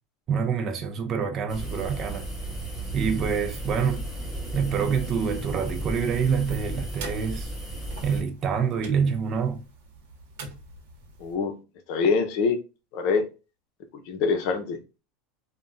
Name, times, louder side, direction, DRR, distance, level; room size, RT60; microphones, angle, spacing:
voice 1, 0.3-2.3 2.9-4.0 4.5-7.5 8.0-9.6, right 6 dB, 30° right, 0.4 m, -26 dB
sound 1, 1.5-8.2, right 1 dB, 5° right, 1.6 m, -34 dB
sound 2, 6.6-11.4, right 3 dB, 70° right, 0.9 m, -45 dB
voice 2, 11.2-11.5 11.9-12.6 12.9-13.2 14.1-14.8, left 5 dB, 50° left, 0.6 m, -24 dB
3.4 x 2.2 x 2.5 m
supercardioid pair, 160°, 0 cm